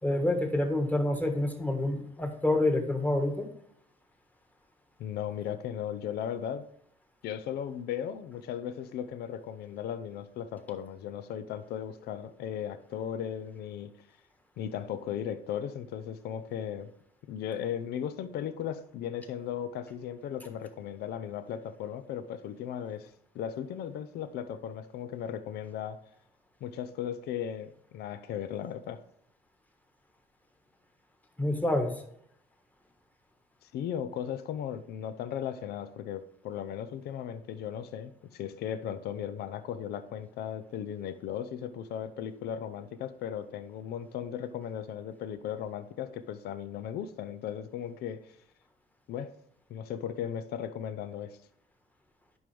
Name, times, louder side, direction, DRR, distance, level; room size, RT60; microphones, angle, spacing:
voice 1, 0.0-3.5 31.4-32.0, left 1 dB, 10° left, 5 dB, 1.4 m, -27 dB
voice 2, 5.0-6.7 7.2-13.9 14.6-16.9 17.3-26.0 26.6-29.0 33.6-48.3 49.1-49.3 49.7-51.4, left 9 dB, 70° left, 12 dB, 0.6 m, -37 dB
11.0 x 5.4 x 3.3 m, 0.70 s
cardioid pair, 110°, 17 cm